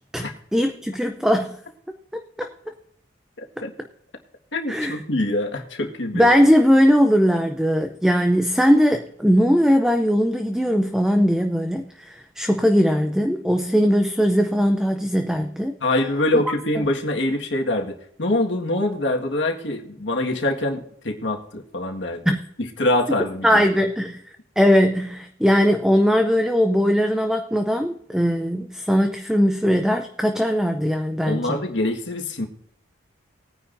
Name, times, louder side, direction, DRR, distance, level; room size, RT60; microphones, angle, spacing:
voice 1, 0.5-1.6 2.1-2.5 4.7-5.0 6.1-15.7 16.3-16.4 16.8-16.9 22.3-22.4 23.4-24.2 24.6-31.6, equal, 5° right, 6 dB, 0.5 m, -19 dB
voice 2, 4.5-6.3 15.8-22.2 22.6-23.6 31.3-32.5, left 1 dB, 75° left, 2 dB, 1.7 m, -24 dB
19.5 x 9.6 x 2.6 m, 0.67 s
head